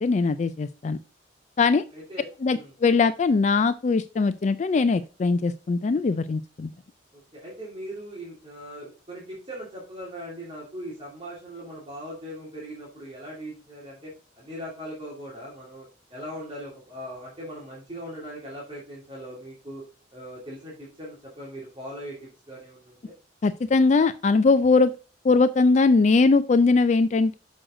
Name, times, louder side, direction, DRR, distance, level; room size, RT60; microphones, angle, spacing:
voice 1, 0.0-1.0 1.6-1.8 2.4-6.7 23.4-24.9 25.2-27.4, left 4 dB, 40° left, 12 dB, 0.3 m, -21 dB
voice 2, 1.9-2.7 7.1-19.8 20.1-23.1, equal, 30° right, -6 dB, 2.7 m, -40 dB
6.3 x 6.3 x 3.8 m, 0.33 s
head